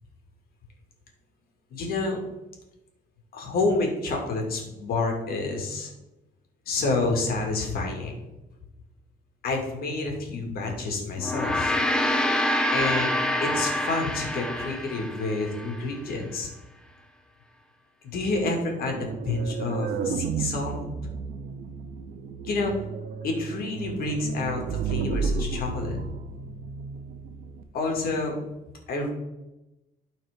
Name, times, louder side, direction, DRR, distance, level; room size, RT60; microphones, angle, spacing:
voice 1, 1.7-2.2 3.3-5.9 6.7-8.1 9.4-11.8 12.7-13.1 13.4-16.5 18.0-20.8 22.4-22.7 23.2-26.0 27.7-28.4 28.9-29.1, left 3 dB, 65° left, 1 dB, 2.2 m, -28 dB
Gong, 11.2-15.8, left 1 dB, 5° left, 0.7 m, -26 dB
sound 1, 18.9-27.6, right 5 dB, 60° right, 0.8 m, -32 dB
12.5 x 4.3 x 3.6 m, 0.98 s
cardioid pair, 110°, 17 cm